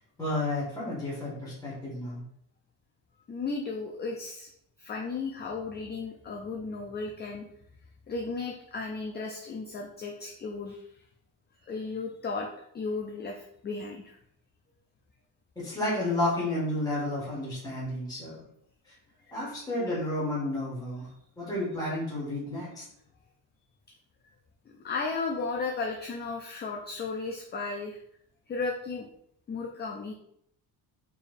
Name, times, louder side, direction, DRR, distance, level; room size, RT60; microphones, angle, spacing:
voice 1, 0.2-2.2 15.5-18.4 19.3-21.1 21.4-22.8, left 1 dB, 10° left, -7 dB, 1.6 m, -31 dB
voice 2, 3.3-4.5 4.8-7.5 8.1-10.9 11.6-12.5 12.7-14.2 19.3-19.4 24.7-28.0 28.5-29.1 29.5-30.1, left 4 dB, 25° left, 1 dB, 0.4 m, -35 dB
4.5 x 3.3 x 2.5 m, 0.72 s
cardioid pair, 120°, 44 cm